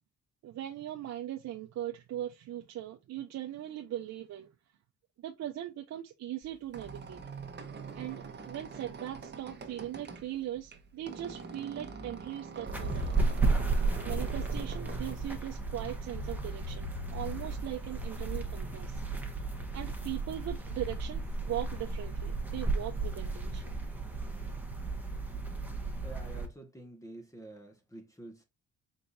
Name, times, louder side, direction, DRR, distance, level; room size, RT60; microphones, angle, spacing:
voice 1, 0.4-4.5 5.2-7.2 7.9-13.2 14.0-19.0 19.7-23.7, right 12 dB, 60° right, 0.7 m, -40 dB
Squeak, 6.4-16.0, right 5 dB, 35° right, 1.2 m, -45 dB
sound 1, 12.7-26.5, right 3 dB, 5° right, 1.3 m, -34 dB
voice 2, 26.0-28.4, right 1 dB, 10° left, 1.4 m, -48 dB
4.4 x 3.8 x 2.6 m
cardioid pair, 90°, 30 cm